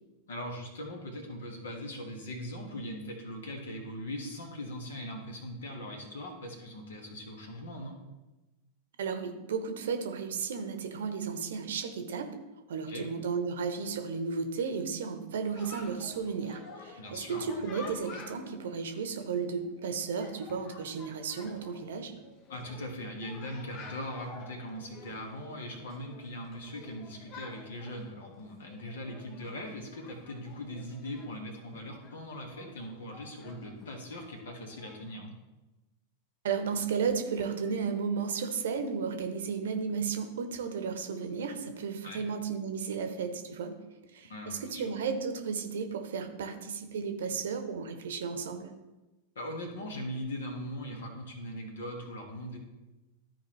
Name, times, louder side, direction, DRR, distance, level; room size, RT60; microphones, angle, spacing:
voice 1, 0.3-8.0 12.9-13.1 17.0-17.6 22.5-35.3 42.0-42.3 44.3-44.8 49.3-52.6, equal, 65° left, 2 dB, 1.6 m, -40 dB
voice 2, 9.0-12.3 12.7-22.1 36.4-43.8 44.1-48.7, right 5 dB, 60° right, 7 dB, 0.9 m, -34 dB
Chatter, 15.5-35.1, left 4 dB, 40° left, 1.0 m, -51 dB
13.5 x 4.6 x 3.2 m, 1.1 s
figure-of-eight pair, 90°, 0 cm